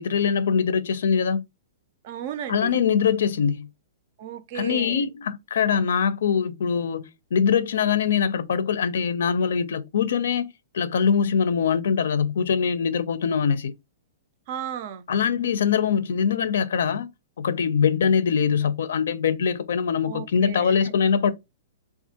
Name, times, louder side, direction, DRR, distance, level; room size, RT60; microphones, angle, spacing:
voice 1, 0.0-1.4 2.5-3.7 4.5-10.5 10.7-13.7 15.1-17.1 17.4-21.3, left 7 dB, 75° left, 0.4 m, -23 dB
voice 2, 2.0-2.7 4.2-5.1 14.5-15.1 20.0-20.7, right 9 dB, 45° right, 0.4 m, -34 dB
3.5 x 2.4 x 2.7 m
hypercardioid pair, 150°, 0 cm